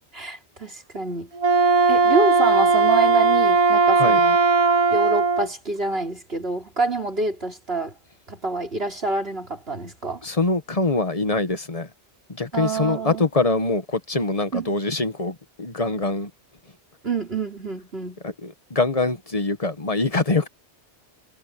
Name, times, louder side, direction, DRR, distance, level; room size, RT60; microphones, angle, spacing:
voice 1, 0.1-1.3 1.9-4.4 4.9-7.9 8.3-10.2 12.5-13.2 14.5-14.7 17.0-18.2, right 3 dB, 60° right, 4.5 m, -27 dB
Wind instrument woodwind instrument, 1.3-5.5, right 4 dB, 35° right, 0.7 m, -18 dB
voice 2, 10.2-11.9 12.3-16.3 18.2-20.5, left 3 dB, 35° left, 1.4 m, -24 dB
omnidirectional pair, 1.1 m